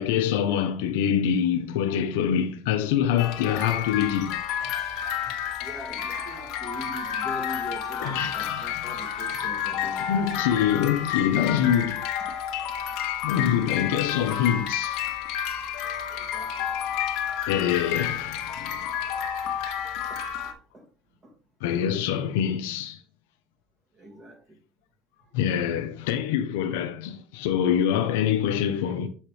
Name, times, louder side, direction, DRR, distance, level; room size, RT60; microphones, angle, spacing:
voice 1, 0.0-4.4 8.0-8.6 10.1-12.1 13.2-15.0 17.5-18.9 21.6-23.0 25.3-29.1, left 9 dB, 90° left, 0.8 m, -25 dB
sound 1, 3.2-20.5, left 9 dB, 70° left, 1.2 m, -30 dB
voice 2, 5.6-10.5 12.2-12.3 16.1-16.9 19.1-19.5 20.1-20.3 20.7-20.9 21.2-21.3 23.9-24.4, right 1 dB, 30° right, 2.1 m, -43 dB
7.2 x 4.3 x 3.3 m
supercardioid pair, 110°, 0 cm